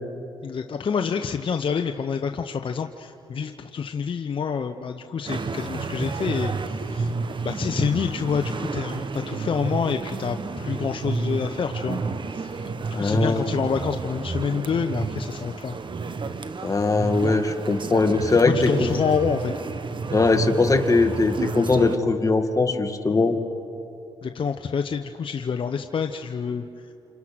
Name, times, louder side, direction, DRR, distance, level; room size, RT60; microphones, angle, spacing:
voice 1, 0.4-7.1 7.4-12.0 12.3-15.7 18.3-19.5 24.2-26.6, left 6 dB, 50° left, 6 dB, 1.0 m, -27 dB
sound 1, 5.3-22.0, right 4 dB, 50° right, 1.4 m, -31 dB
voice 2, 12.9-13.5 16.6-18.9 20.1-23.4, left 3 dB, 30° left, 6 dB, 2.2 m, -21 dB
29.0 x 28.0 x 6.2 m, 2.8 s
cardioid pair, 65°, 11 cm